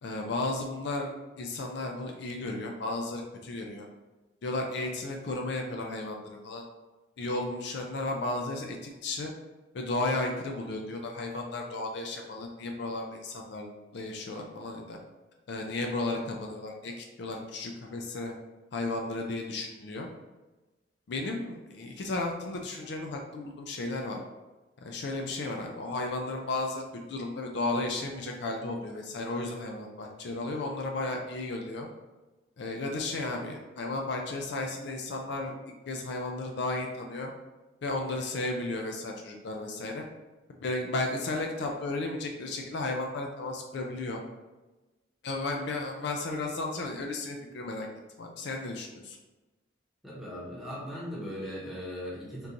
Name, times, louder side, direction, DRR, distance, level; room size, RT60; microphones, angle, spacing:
voice 1, 0.0-3.9 4.4-6.7 7.2-9.3 9.7-15.0 15.5-18.3 18.7-20.1 21.1-24.2 24.8-26.8 27.1-31.9 32.6-35.6 35.9-37.3 37.8-40.0 40.6-44.2 45.2-47.9 48.2-49.2, left 2 dB, 60° left, 2 dB, 0.4 m, -34 dB
voice 2, 50.0-52.5, equal, ahead, -7 dB, 1.0 m, -38 dB
3.6 x 2.5 x 2.8 m, 1.1 s
head